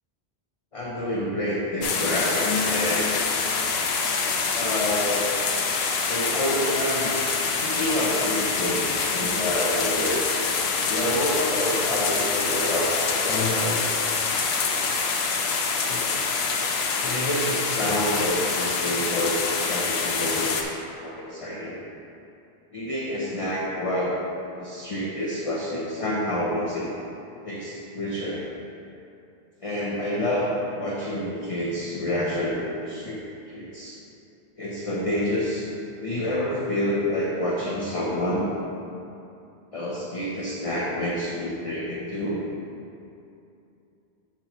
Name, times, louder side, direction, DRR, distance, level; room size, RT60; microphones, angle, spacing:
voice 1, 0.7-3.1 4.5-5.4 6.1-7.1 7.4-10.6 10.9-13.8 14.6-14.9 15.9-16.2 16.5-16.6 17.0-19.4 19.6-21.8 22.7-24.2 24.6-26.9 27.4-28.5 29.6-33.2 33.5-34.0 34.6-35.7 36.0-38.5 39.7-42.5, left 1 dB, 35° left, -5 dB, 0.7 m, -28 dB
sound 1, 1.8-20.6, left 5 dB, 70° left, 0.9 m, -26 dB
8.8 x 5.8 x 3.0 m, 2.7 s
omnidirectional pair, 1.1 m